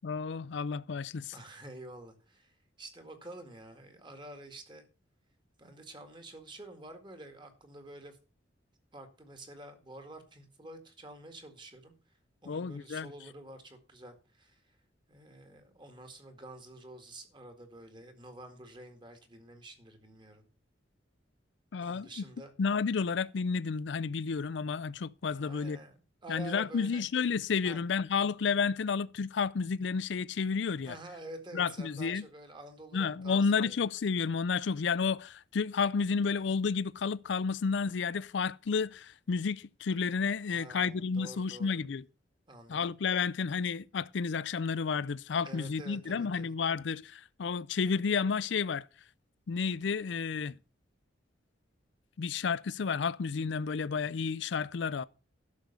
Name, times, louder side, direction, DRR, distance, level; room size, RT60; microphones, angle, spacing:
voice 1, 0.0-1.3 12.5-13.1 21.7-22.1 22.6-25.8 26.3-31.0 31.5-32.2 32.9-42.0 42.7-48.9 49.5-50.6 52.2-55.0, left 5 dB, 70° left, 0.4 m, -31 dB
voice 2, 1.3-4.9 5.6-8.2 8.9-11.9 12.4-14.6 15.1-20.5 21.8-22.5 25.3-27.0 27.6-27.8 30.9-33.8 40.5-41.8 42.5-42.8 45.4-46.5, right 1 dB, 25° right, 1.9 m, -49 dB
11.5 x 6.4 x 6.7 m
head